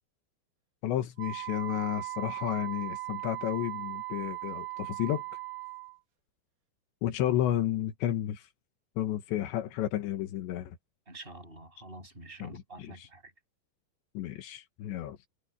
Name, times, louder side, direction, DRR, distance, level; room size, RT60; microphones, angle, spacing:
voice 1, 0.8-5.2 7.0-8.5 9.0-10.8 12.4-13.1 14.2-15.2, left 12 dB, 85° left, 3.6 m, -32 dB
Wind instrument woodwind instrument, 1.2-6.0, right 21 dB, 80° right, 4.2 m, -38 dB
voice 2, 11.1-13.3, right 2 dB, 10° right, 6.7 m, -47 dB
omnidirectional pair, 5.0 m